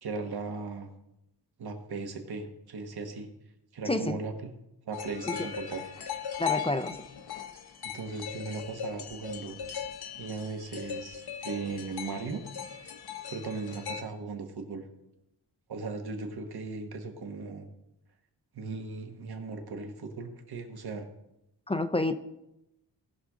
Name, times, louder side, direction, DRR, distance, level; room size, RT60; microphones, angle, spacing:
voice 1, 0.0-0.9 1.6-3.3 3.7-4.5 4.9-5.9 7.8-9.6 10.2-12.4 13.3-14.8 15.7-17.7 18.5-21.1, right 4 dB, 65° right, 5 dB, 1.5 m, -37 dB
voice 2, 3.9-4.2 6.4-7.0 21.7-22.2, left 2 dB, 15° left, 8 dB, 0.4 m, -28 dB
sound 1, 4.9-14.0, left 8 dB, 65° left, 0.9 m, -39 dB
18.5 x 6.4 x 3.7 m, 0.87 s
wide cardioid pair, 155°, 40 cm